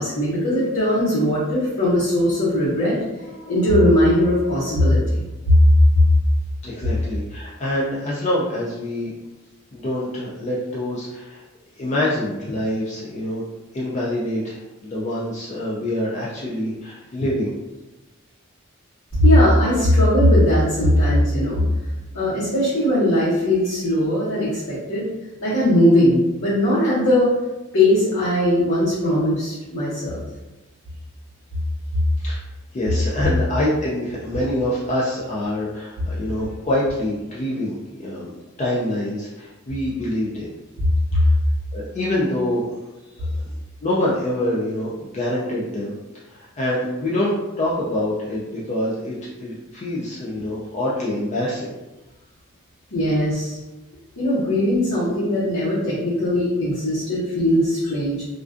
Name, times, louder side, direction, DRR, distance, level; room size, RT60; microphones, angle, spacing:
voice 1, 0.0-5.6 5.9-6.0 19.1-21.6 22.1-25.1 25.4-27.3 27.7-30.2 41.1-41.2 52.9-53.6 54.2-58.2, left 1 dB, 80° left, -12 dB, 0.9 m, -19 dB
voice 2, 6.6-9.1 9.7-11.4 11.8-13.4 13.7-17.5 32.2-32.4 32.7-38.3 38.6-40.5 41.2-41.3 41.7-42.6 43.2-43.3 43.8-45.9 46.3-51.7, left 1 dB, 30° left, -6 dB, 0.3 m, -25 dB
2.4 x 2.2 x 2.4 m, 1.1 s
head